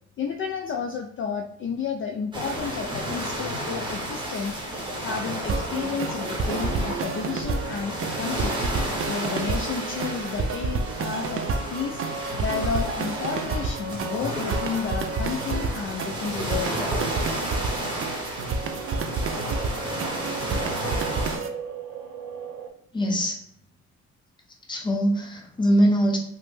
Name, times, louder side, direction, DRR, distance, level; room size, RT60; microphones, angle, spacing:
voice 1, 0.2-8.5 9.0-16.8, left 6 dB, 45° left, 2 dB, 0.4 m, -32 dB
sound 1, 2.3-21.4, equal, 15° right, 0.9 m, -32 dB
sound 2, 5.5-21.5, right 4 dB, 45° right, 0.4 m, -30 dB
sound 3, 5.6-22.7, right 7 dB, 80° right, 0.7 m, -43 dB
voice 2, 22.9-23.4 24.7-26.2, equal, 15° left, 1 dB, 0.7 m, -22 dB
3.1 x 2.0 x 3.1 m, 0.68 s
cardioid pair, 90°, 30 cm